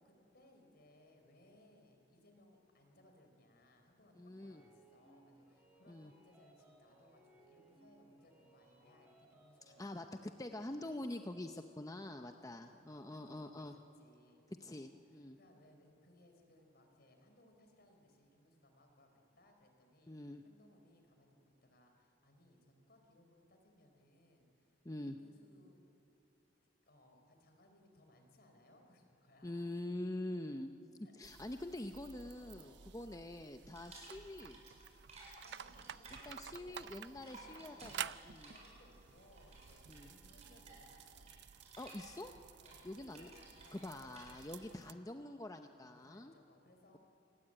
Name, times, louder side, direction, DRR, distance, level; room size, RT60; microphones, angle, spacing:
voice 1, 0.0-9.8 10.7-11.0 12.2-13.7 13.9-25.8 26.6-29.7 31.0-31.2 32.4-32.9 35.4-38.1 38.4-41.4 42.6-44.3 44.6-44.9 45.8-47.0, left 1 dB, 60° left, 4 dB, 4.4 m, -66 dB
voice 2, 4.2-4.6 5.9-6.1 9.8-13.7 14.6-15.4 20.1-20.4 24.8-25.2 29.4-30.7 31.2-34.6 36.3-38.5 39.9-40.1 41.8-42.3 42.8-43.3 43.7-46.3, left 1 dB, 20° left, 6 dB, 0.7 m, -45 dB
sound 1, 4.4-9.8, right 1 dB, 10° right, 4.6 m, -66 dB
sound 2, 31.2-44.9, right 9 dB, 65° right, 0.5 m, -52 dB
sound 3, 33.7-34.8 35.1-44.7, right 3 dB, 40° right, 7.4 m, -58 dB
28.5 x 20.0 x 8.9 m, 2.8 s
head